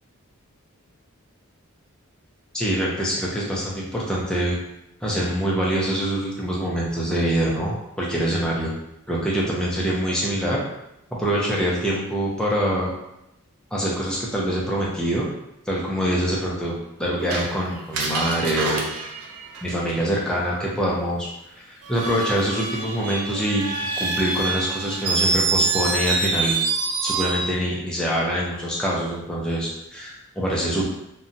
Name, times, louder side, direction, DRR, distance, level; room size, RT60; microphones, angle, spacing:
voice 1, 2.5-4.6 5.0-8.7 9.1-10.6 11.2-12.9 13.7-15.3 15.7-18.9 19.6-26.6 27.0-30.8, equal, 5° left, -5 dB, 0.4 m, -25 dB
Screech, 17.3-20.2 21.8-27.5, right 3 dB, 80° right, 0.4 m, -26 dB
2.7 x 2.1 x 2.5 m, 0.85 s
head